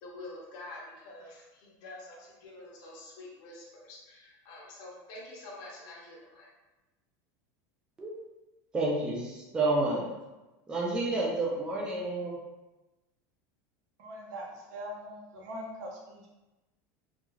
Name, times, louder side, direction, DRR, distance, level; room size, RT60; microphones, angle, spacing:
voice 1, 0.0-6.5, left 2 dB, 45° left, -4 dB, 0.6 m, -47 dB
voice 2, 8.7-10.1 10.7-12.4, right 2 dB, 10° right, -3 dB, 0.4 m, -30 dB
voice 3, 14.0-16.3, equal, 65° right, -2 dB, 0.7 m, -42 dB
2.4 x 2.3 x 3.0 m, 1.1 s
supercardioid pair, 170°, 10 cm